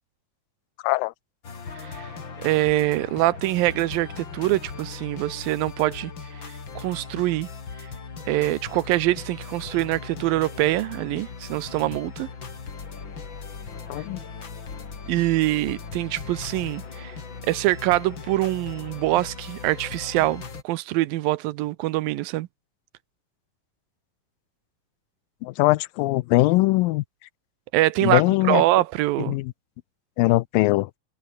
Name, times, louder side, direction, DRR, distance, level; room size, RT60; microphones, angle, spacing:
sound 1, 1.4-20.6, left 5 dB, 35° left, 3.2 m, -38 dB
voice 1, 2.4-6.1 6.8-7.5 8.3-12.3 15.1-17.2 17.4-22.5 27.7-29.4, right 17 dB, 85° right, 2.6 m, -24 dB
voice 2, 25.4-27.0 28.0-28.6 29.3-29.5 30.2-30.9, left 20 dB, 85° left, 2.3 m, -21 dB
omnidirectional pair, 4.1 m